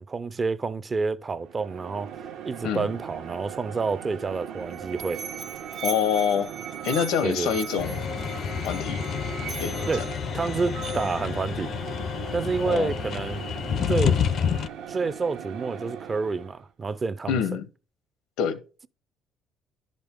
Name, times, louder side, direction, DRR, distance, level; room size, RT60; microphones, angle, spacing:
voice 1, 0.0-2.1 2.4-5.2 7.2-7.5 9.9-10.1 10.3-11.7 12.3-13.4 13.9-14.2 14.9-17.4, right 4 dB, 30° right, 0.4 m, -28 dB
sound 1, 1.4-16.7, right 8 dB, 80° right, 1.0 m, -40 dB
Musical instrument, 4.4-11.4, right 7 dB, 45° right, 1.1 m, -39 dB
voice 2, 5.8-6.5 6.8-8.0 8.6-9.0 9.6-10.0 12.6-12.9 17.3-17.6 18.4-18.6, left 8 dB, 90° left, 0.8 m, -26 dB
sound 2, 7.8-14.7, left 8 dB, 55° left, 0.4 m, -29 dB
11.0 x 5.2 x 3.5 m
cardioid pair, 110°, 0 cm